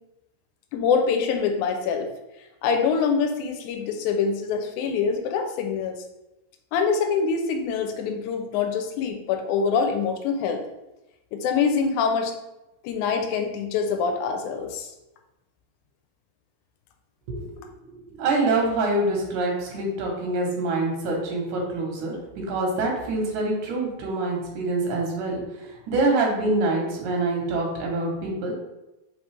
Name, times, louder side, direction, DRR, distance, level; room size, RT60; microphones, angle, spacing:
voice 1, 0.7-2.1 2.6-6.0 6.7-10.6 11.3-12.3 12.8-14.9, left 5 dB, 85° left, 5 dB, 2.0 m, -25 dB
voice 2, 18.1-22.2 22.5-28.5, right 2 dB, 85° right, -1 dB, 2.6 m, -25 dB
5.2 x 3.1 x 3.3 m, 0.97 s
omnidirectional pair, 3.4 m